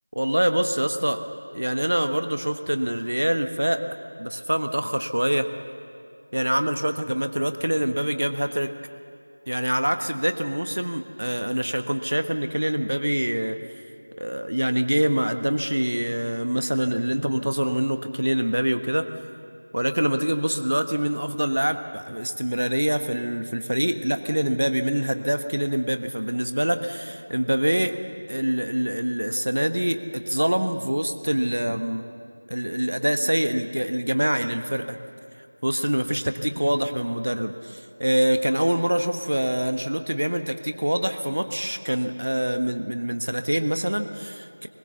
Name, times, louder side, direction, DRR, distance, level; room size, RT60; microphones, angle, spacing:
voice 1, 0.1-1.2 1.5-3.8 4.2-5.5 6.3-8.7 9.5-13.6 14.2-19.1 19.7-28.0 28.3-32.0 32.5-35.0 35.6-44.7, equal, 85° right, 8 dB, 1.3 m, -25 dB
22.0 x 21.0 x 7.0 m, 2.5 s
figure-of-eight pair, 180°, 0 cm